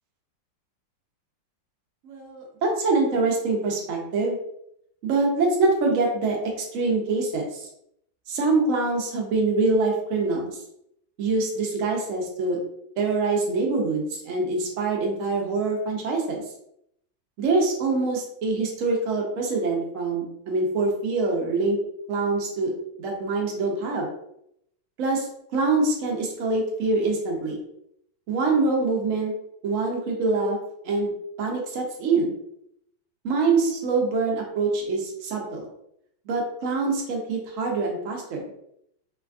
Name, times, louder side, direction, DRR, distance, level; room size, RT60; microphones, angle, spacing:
voice 1, 2.0-4.4 5.0-7.7 8.3-10.6 11.2-12.6 13.0-16.4 17.4-21.8 22.1-22.7 23.0-24.1 25.0-27.6 28.3-29.3 29.6-30.6 30.8-31.1 31.4-32.4 33.2-35.7 36.3-38.4, right 3 dB, 80° right, 0 dB, 0.7 m, -24 dB
3.3 x 2.3 x 2.4 m, 0.75 s
omnidirectional pair, 2.1 m